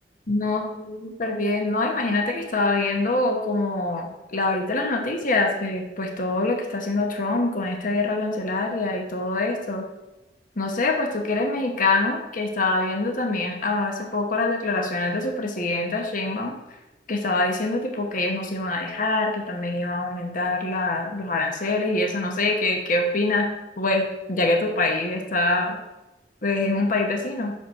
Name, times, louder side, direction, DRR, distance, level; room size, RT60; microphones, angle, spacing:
voice 1, 0.3-9.8 10.6-16.5 17.1-23.5 23.8-25.8 26.4-27.5, left 2 dB, 45° left, 2 dB, 1.0 m, -25 dB
6.2 x 5.5 x 5.6 m, 1.0 s
head